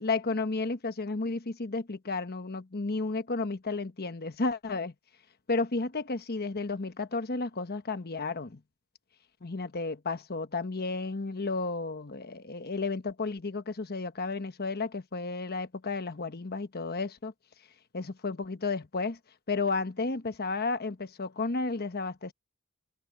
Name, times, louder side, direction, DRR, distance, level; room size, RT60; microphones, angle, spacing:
voice 1, 0.0-4.9 5.5-8.6 9.4-17.3 17.9-19.2 19.5-22.3, left 3 dB, 45° left, 1.1 m, -32 dB
head